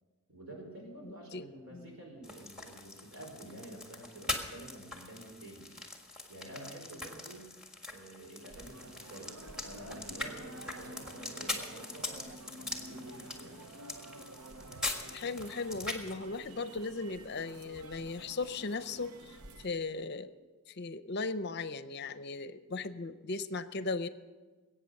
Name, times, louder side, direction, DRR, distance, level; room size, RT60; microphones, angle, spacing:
voice 1, 0.3-5.7 6.3-7.5 7.9-9.3 9.6-12.3 12.7-13.6, right 1 dB, 65° right, 0 dB, 4.7 m, -49 dB
voice 2, 1.0-1.9 15.1-20.3 20.7-24.1, left 3 dB, 50° left, 13 dB, 0.6 m, -37 dB
sound 1, 2.2-16.1, left 2 dB, 5° right, 1.6 m, -42 dB
sound 2, 8.5-19.7, right 2 dB, 85° right, 0.9 m, -50 dB
21.0 x 8.8 x 6.5 m, 1.3 s
head